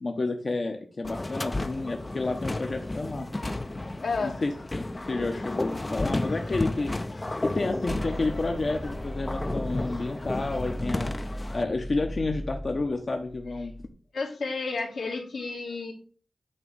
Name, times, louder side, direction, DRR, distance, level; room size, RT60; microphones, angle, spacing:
voice 1, 0.0-3.3 4.2-4.6 5.1-6.9 7.4-11.1 11.5-13.7, left 3 dB, 50° left, 3 dB, 0.9 m, -30 dB
sound 1, 1.0-11.6, left 2 dB, 30° left, 0.6 m, -33 dB
voice 2, 4.0-4.4 14.1-15.9, left 4 dB, 85° left, -1 dB, 1.8 m, -31 dB
sound 2, 7.9-13.9, equal, 10° right, 0.6 m, -37 dB
8.9 x 3.0 x 5.3 m, 0.40 s
cardioid pair, 55°, 0 cm